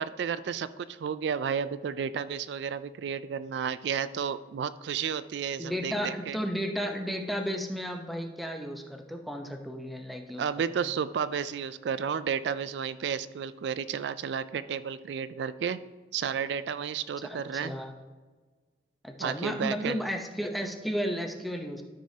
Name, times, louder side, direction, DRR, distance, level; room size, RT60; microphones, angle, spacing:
voice 1, 0.0-6.4 10.4-15.8 16.1-17.7 19.2-20.0, right 7 dB, 75° right, 14 dB, 0.3 m, -32 dB
voice 2, 5.6-10.5 17.2-17.9 19.0-21.8, equal, ahead, 3 dB, 0.8 m, -33 dB
13.0 x 6.2 x 2.8 m, 1.4 s
head